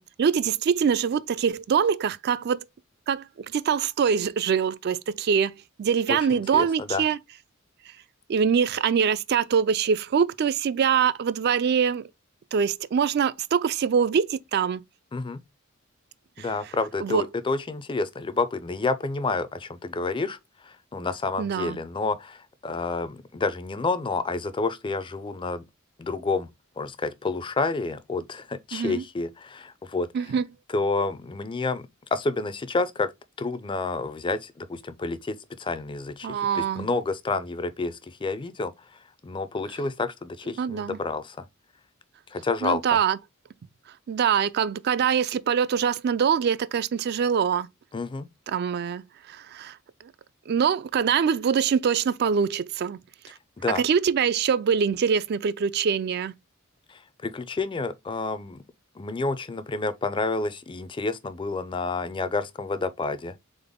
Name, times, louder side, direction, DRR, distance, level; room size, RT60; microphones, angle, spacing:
voice 1, 0.0-2.6 3.1-7.2 8.3-12.1 12.5-14.8 17.0-17.3 21.4-21.8 28.7-29.0 30.1-30.5 36.2-36.9 40.6-41.0 42.6-43.2 44.1-47.7 48.5-49.8 50.5-53.0 53.2-53.3 53.7-56.3, right 7 dB, 50° right, 0.3 m, -24 dB
voice 2, 6.1-7.0 15.1-15.4 16.4-20.4 20.6-25.7 26.0-26.5 26.8-30.1 30.7-33.1 33.4-38.7 39.2-41.4 42.3-43.0 47.9-48.3 53.6-53.9 56.9-58.6 59.0-63.3, left 3 dB, 25° left, 0.4 m, -29 dB
4.0 x 3.7 x 3.5 m
head